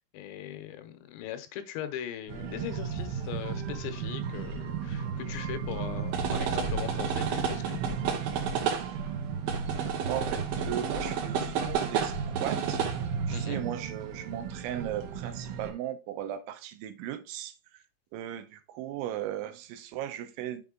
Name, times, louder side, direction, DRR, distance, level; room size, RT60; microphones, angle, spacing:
voice 1, 0.1-7.8 13.3-13.7, left 10 dB, 80° left, 2.9 m, -40 dB
sound 1, 2.3-15.7, right 6 dB, 70° right, 2.5 m, -32 dB
voice 2, 10.1-12.8 13.3-17.5 18.1-20.7, right 11 dB, 85° right, 3.1 m, -37 dB
7.1 x 4.3 x 3.7 m
omnidirectional pair, 5.4 m